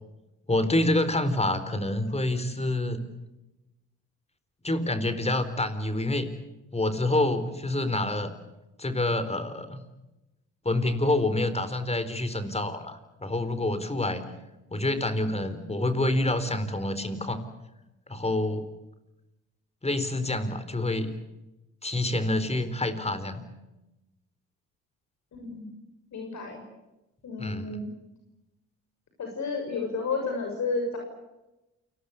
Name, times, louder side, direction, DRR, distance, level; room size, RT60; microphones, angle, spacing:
voice 1, 0.5-3.0 4.6-6.3 6.7-8.3 8.8-9.8 10.6-14.3 14.7-17.4 18.1-18.7 19.8-21.2 21.8-23.4 27.4-27.8, left 1 dB, 20° left, 12 dB, 4.2 m, -27 dB
voice 2, 25.3-25.7 26.1-26.6 27.2-27.9 29.2-31.0, left 4 dB, 55° left, 2 dB, 6.9 m, -31 dB
29.0 x 19.5 x 8.3 m, 0.97 s
supercardioid pair, 65°, 33 cm